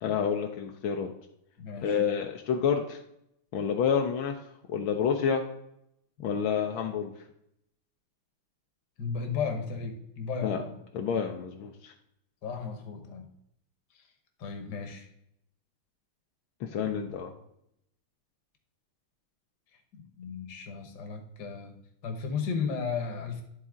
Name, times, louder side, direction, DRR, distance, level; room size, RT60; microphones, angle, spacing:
voice 1, 0.0-1.1 1.8-3.0 3.5-4.4 4.7-5.4 6.2-7.1 10.4-10.6 10.9-11.9 16.6-17.3, left 7 dB, 80° left, 3 dB, 1.5 m, -28 dB
voice 2, 1.6-2.0 9.0-10.7 12.4-13.3 13.9-14.0 14.4-15.1 19.9-21.7 22.0-23.4, left 5 dB, 60° left, 4 dB, 1.6 m, -34 dB
10.5 x 4.1 x 3.6 m, 0.77 s
omnidirectional pair, 2.3 m